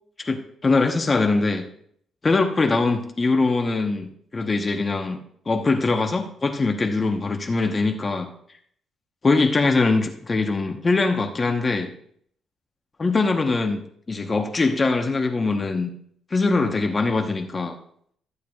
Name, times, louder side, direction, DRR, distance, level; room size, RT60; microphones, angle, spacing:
voice 1, 0.2-1.6 2.2-5.2 5.5-8.3 9.2-11.9 13.0-13.8 14.1-15.9 16.3-17.7, left 3 dB, 30° left, 3 dB, 0.9 m, -22 dB
14.0 x 8.1 x 2.3 m, 0.65 s
cardioid pair, 90°, 0 cm